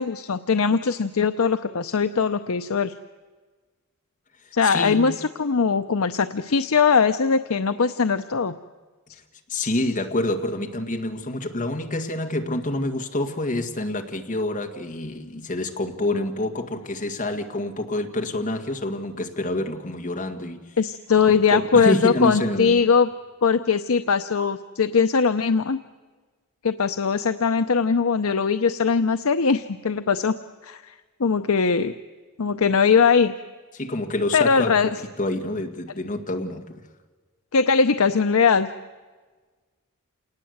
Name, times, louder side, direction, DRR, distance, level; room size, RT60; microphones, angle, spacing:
voice 1, 0.0-2.9 4.5-8.5 9.5-9.7 20.8-23.1 23.4-25.8 26.6-30.4 30.6-30.9 31.2-31.9 32.4-33.3 34.3-34.9 37.5-38.7, left 5 dB, 80° left, 9 dB, 0.7 m, -20 dB
voice 2, 4.6-5.1 9.5-20.6 21.5-22.8 33.7-34.8 35.2-36.8, left 1 dB, 40° left, 5 dB, 1.9 m, -27 dB
28.0 x 19.0 x 7.9 m, 1.4 s
head